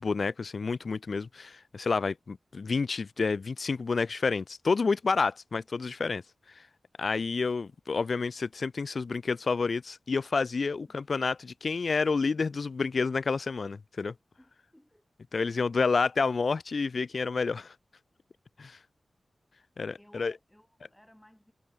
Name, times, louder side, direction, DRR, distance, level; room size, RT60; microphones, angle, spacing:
voice 1, 0.0-6.2 7.0-14.1 15.3-17.7 18.6-18.8 19.8-20.3, left 4 dB, 65° left, 0.4 m, -29 dB
voice 2, 10.7-11.1 14.4-15.0 20.0-21.5, left 1 dB, 10° left, 8.0 m, -59 dB
wide cardioid pair, 65°, 0 cm